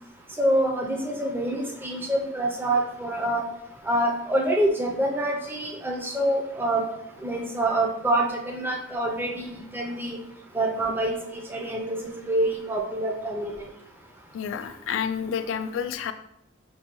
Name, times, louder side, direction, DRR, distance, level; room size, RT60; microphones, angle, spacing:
voice 1, 0.4-3.4 3.9-6.8 7.2-10.2 10.5-13.6, right 1 dB, 10° right, 0 dB, 0.4 m, -26 dB
voice 2, 14.3-16.1, left 7 dB, 85° left, 10 dB, 0.3 m, -29 dB
5.2 x 2.2 x 2.9 m, 0.79 s
head